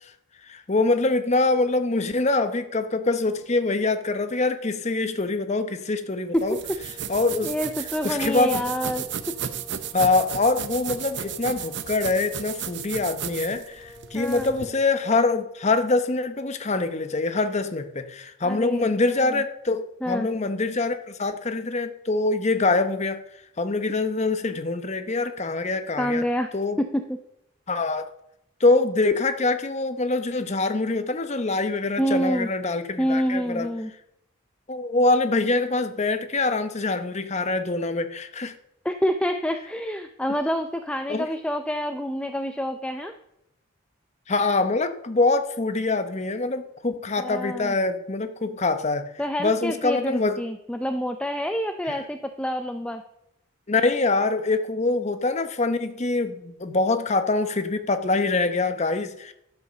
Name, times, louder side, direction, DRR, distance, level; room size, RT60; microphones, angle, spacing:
voice 1, 0.4-6.6 7.1-7.5 8.0-8.6 9.9-23.2 23.6-26.2 26.5-26.8 27.7-28.1 28.6-33.7 34.7-38.5 41.1-41.3 44.3-49.1 49.4-50.4 53.7-59.3, left 3 dB, 35° left, 9 dB, 0.8 m, -24 dB
sound 1, 6.4-14.7, right 9 dB, 55° right, 0.7 m, -34 dB
sound 2, 6.5-15.3, left 2 dB, 15° right, 2.3 m, -49 dB
voice 2, 7.4-9.4 14.1-14.5 18.4-19.4 20.0-20.3 26.0-26.5 26.8-27.2 32.0-32.5 33.0-33.9 38.8-43.1 47.2-47.8 49.2-53.0, equal, 5° left, 7 dB, 0.4 m, -27 dB
12.0 x 5.7 x 6.7 m, 0.79 s
head